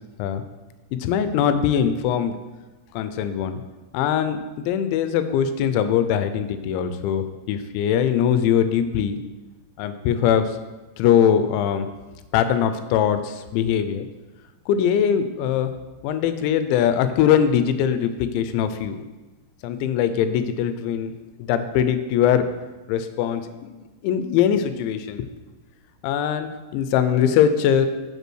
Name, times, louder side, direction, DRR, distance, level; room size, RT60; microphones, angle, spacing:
voice 1, 1.0-2.4 2.9-3.6 3.9-9.2 9.8-10.6 11.0-11.9 12.3-14.1 14.7-15.7 16.0-19.0 19.6-21.1 21.4-22.5 22.9-25.3 26.0-27.9, left 9 dB, 90° left, 10 dB, 3.0 m, -21 dB
6.6 x 5.5 x 6.2 m, 1.2 s
omnidirectional pair, 5.2 m